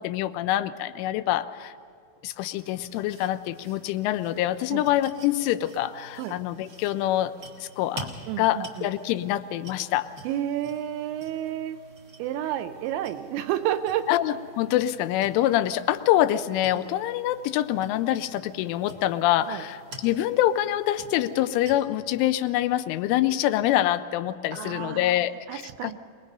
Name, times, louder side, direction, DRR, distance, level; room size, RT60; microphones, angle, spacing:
voice 1, 0.0-1.7 2.2-7.3 7.6-8.1 8.4-10.1 14.1-25.9, left 13 dB, 90° left, 11 dB, 3.2 m, -25 dB
sound 1, 2.5-21.8, right 2 dB, 65° right, 1.0 m, -48 dB
voice 2, 8.3-8.9 10.2-11.8 12.2-14.2 16.7-16.9 19.5-19.6 24.5-26.0, right 11 dB, 80° right, 10 dB, 2.8 m, -31 dB
23.5 x 20.5 x 5.4 m, 2.3 s
omnidirectional pair, 5.5 m